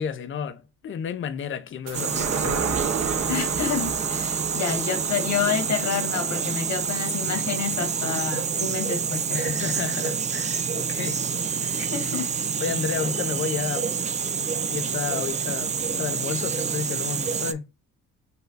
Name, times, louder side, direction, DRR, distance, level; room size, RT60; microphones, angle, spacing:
voice 1, 0.0-2.7 9.3-11.2 11.6-11.9 12.6-13.9 14.7-17.7, left 7 dB, 40° left, 0.5 m, -32 dB
sound 1, 1.9-17.5, right 6 dB, 25° right, 0.3 m, -27 dB
sound 2, 1.9-8.7 9.1-9.2, right 6 dB, 60° right, 1.0 m, -33 dB
voice 2, 3.3-9.5 11.8-12.3, left 7 dB, 65° left, 1.5 m, -29 dB
4.0 x 2.2 x 4.0 m
cardioid pair, 90°, 30 cm